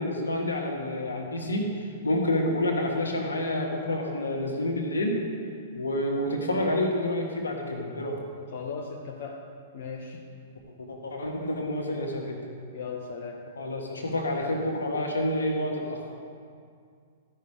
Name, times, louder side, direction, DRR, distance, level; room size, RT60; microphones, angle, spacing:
voice 1, 0.0-1.7 2.0-5.2 5.7-8.2 10.8-12.4 13.6-16.2, left 1 dB, 80° left, 1 dB, 1.5 m, -28 dB
voice 2, 8.5-9.5 9.7-10.2 12.7-13.5, left 5 dB, 55° left, 0 dB, 0.8 m, -37 dB
13.5 x 5.6 x 4.9 m, 2.2 s
figure-of-eight pair, 110°, 0 cm